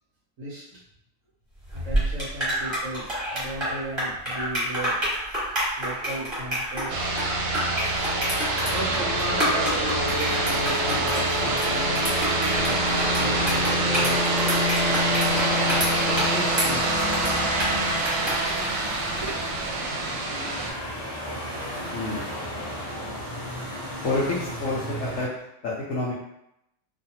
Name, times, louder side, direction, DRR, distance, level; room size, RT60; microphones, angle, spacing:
voice 1, 0.4-0.8 1.7-5.0 5.8-7.8 8.6-14.2 15.0-17.2 18.3-19.6 19.9-20.0, right 1 dB, 60° right, -6 dB, 0.9 m, -36 dB
sound 1, 1.6-19.4, equal, 20° right, 0.9 m, -29 dB
sound 2, 6.9-20.7, right 1 dB, 90° right, 1.2 m, -25 dB
sound 3, 8.6-25.2, equal, 20° left, 0.7 m, -35 dB
voice 2, 21.9-22.2 24.0-25.3 25.6-26.1, left 2 dB, 65° left, -6 dB, 0.8 m, -28 dB
2.7 x 2.4 x 2.8 m, 0.80 s
omnidirectional pair, 1.8 m